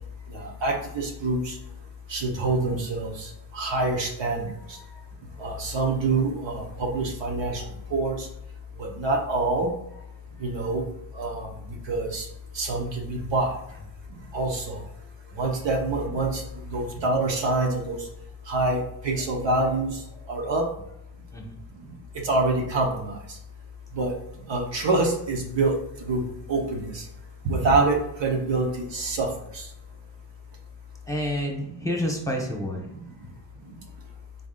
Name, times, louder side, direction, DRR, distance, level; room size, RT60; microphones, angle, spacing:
voice 1, 0.3-1.6 2.1-4.5 5.4-7.6 7.9-8.3 8.8-9.7 10.4-10.8 11.1-11.5 11.9-12.3 12.5-13.5 14.3-14.8 15.4-16.4 16.7-18.0 18.5-20.0 20.3-20.6 22.2-23.2 23.9-24.1 24.5-25.7 26.0-26.2 26.5-27.0 27.4-29.6, right 2 dB, 60° right, 2 dB, 1.0 m, -26 dB
voice 2, 31.1-32.9 33.2-33.4, equal, 5° left, 0 dB, 1.1 m, -30 dB
3.9 x 3.5 x 2.4 m, 0.80 s
supercardioid pair, 55°, 50 cm